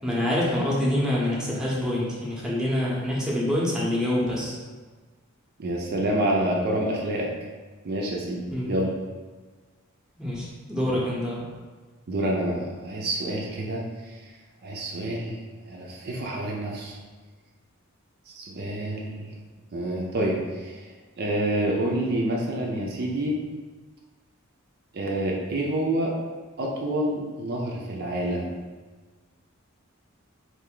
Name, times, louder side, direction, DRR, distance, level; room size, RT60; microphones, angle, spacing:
voice 1, 0.0-4.6 8.5-8.7 10.2-11.4, left 1 dB, 5° right, -6 dB, 0.7 m, -26 dB
voice 2, 5.6-7.3 7.8-8.9 12.1-14.2 14.6-15.4 15.7-17.0 18.4-19.3 19.7-20.9 21.2-23.4 24.9-26.1 26.6-28.6, right 1 dB, 50° right, -2 dB, 0.4 m, -28 dB
3.3 x 2.5 x 3.7 m, 1.4 s
head